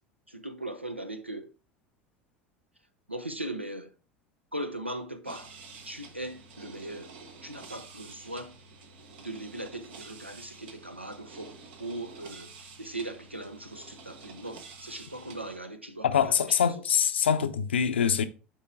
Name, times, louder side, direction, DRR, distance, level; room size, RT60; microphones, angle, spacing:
voice 1, 0.3-1.5 3.1-3.9 4.5-5.5 5.8-7.1 7.4-8.5 9.2-16.7, right 1 dB, 90° right, 0.7 m, -39 dB
sound 1, 5.3-15.6, right 4 dB, 65° right, 1.1 m, -49 dB
voice 2, 16.0-18.2, left 8 dB, 70° left, 0.6 m, -24 dB
8.9 x 4.4 x 3.5 m
figure-of-eight pair, 70°, 6 cm